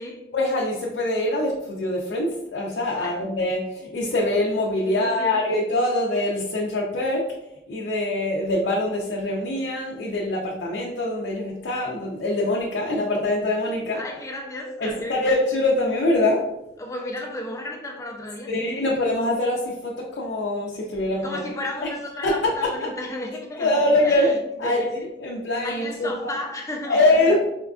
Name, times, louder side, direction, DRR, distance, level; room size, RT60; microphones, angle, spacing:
voice 1, 0.3-7.3 7.7-14.0 14.8-16.4 18.5-21.4 22.2-22.5 22.8-22.9 23.6-24.3 24.6-24.9 25.2-26.3 26.9-27.4, left 1 dB, 85° left, -3 dB, 0.4 m, -24 dB
voice 2, 2.9-3.3 4.9-5.4 13.9-15.3 16.8-18.9 21.0-23.7 24.0-24.4 24.6-25.1 25.6-27.1, left 1 dB, 15° left, 1 dB, 0.4 m, -33 dB
4.2 x 2.3 x 2.3 m, 0.93 s
head